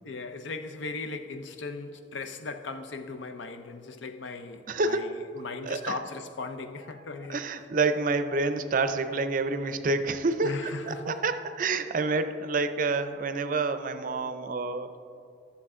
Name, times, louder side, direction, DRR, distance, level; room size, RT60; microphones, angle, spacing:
voice 1, 0.0-7.4 10.4-11.2, left 3 dB, 80° left, 0.6 m, -38 dB
voice 2, 4.7-5.1 5.6-6.0 7.3-14.9, right 3 dB, 45° right, 0.5 m, -28 dB
12.5 x 7.1 x 3.7 m
head